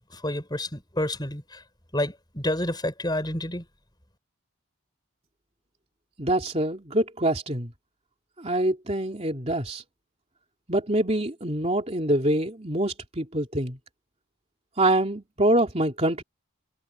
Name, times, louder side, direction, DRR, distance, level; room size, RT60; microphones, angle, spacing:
voice 1, 0.1-1.6 1.9-3.6, left 1 dB, 20° left, 6.5 m, -29 dB
voice 2, 6.2-7.7 8.4-9.8 10.7-13.8 14.8-16.2, right 1 dB, 30° right, 3.2 m, -25 dB
head